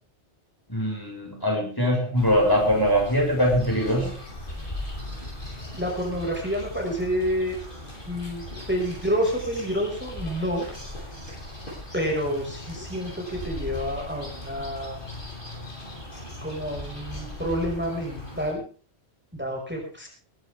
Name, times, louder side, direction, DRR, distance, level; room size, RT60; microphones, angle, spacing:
voice 1, 0.7-4.1, equal, 20° left, 0 dB, 6.3 m, -22 dB
sound 1, 2.1-18.5, left 1 dB, 45° left, 7.7 m, -38 dB
voice 2, 5.7-7.6 8.1-10.7 11.9-15.0 16.4-18.6 19.3-20.1, equal, 10° right, 0 dB, 5.8 m, -28 dB
22.0 x 12.5 x 3.6 m, 0.40 s
omnidirectional pair, 1.2 m